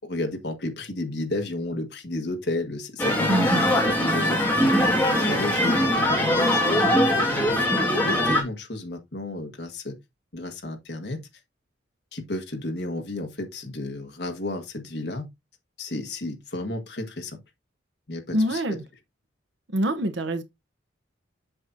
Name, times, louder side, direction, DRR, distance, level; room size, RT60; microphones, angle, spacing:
voice 1, 0.0-3.3 3.6-6.9 7.3-7.7 8.0-10.0 10.3-11.2 12.1-15.3 15.8-17.4 18.1-18.8, left 2 dB, 55° left, 1.6 m, -32 dB
sound 1, 3.0-8.4, left 1 dB, 10° left, 1.8 m, -21 dB
voice 2, 3.3-3.6 18.3-18.8 19.7-20.4, right 1 dB, 70° right, 0.8 m, -25 dB
7.7 x 5.9 x 2.6 m
head